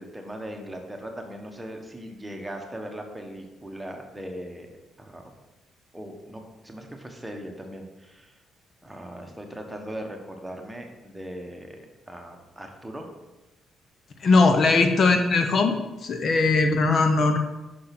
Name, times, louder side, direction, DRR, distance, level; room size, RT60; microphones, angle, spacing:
voice 1, 0.0-5.3 5.9-8.3 8.8-13.1, equal, 10° right, 2 dB, 1.4 m, -39 dB
voice 2, 14.2-17.4, left 3 dB, 50° left, 6 dB, 0.8 m, -20 dB
6.0 x 4.9 x 6.0 m, 1.0 s
cardioid pair, 90°, 0 cm